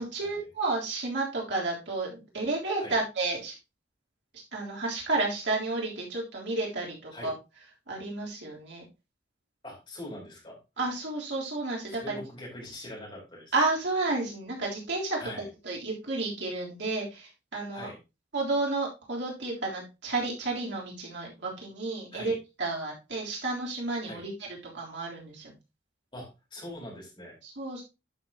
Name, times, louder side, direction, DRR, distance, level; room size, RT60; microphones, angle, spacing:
voice 1, 0.0-3.5 4.5-7.3 7.9-8.9 10.8-12.2 13.5-17.9 18.3-24.3 24.7-25.5 27.4-27.8, right 3 dB, 75° right, -3 dB, 3.5 m, -31 dB
voice 2, 9.6-10.6 11.9-13.5 15.2-15.5 17.7-18.0 22.1-22.4 24.0-24.2 26.1-27.3, left 1 dB, 25° left, -2 dB, 4.4 m, -42 dB
11.5 x 6.1 x 2.9 m, 0.26 s
head